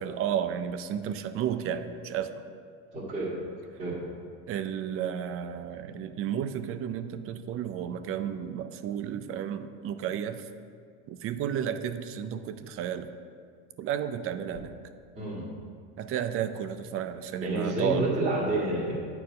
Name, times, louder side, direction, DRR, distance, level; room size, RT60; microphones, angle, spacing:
voice 1, 0.0-2.4 4.5-10.4 11.1-13.1 13.8-14.7 16.0-18.1, right 9 dB, 40° right, 10 dB, 0.5 m, -32 dB
voice 2, 2.9-3.3 3.8-4.0 15.2-15.4 17.4-18.9, right 2 dB, 20° right, -9 dB, 1.9 m, -29 dB
9.2 x 4.6 x 5.2 m, 2.2 s
supercardioid pair, 120°, 35 cm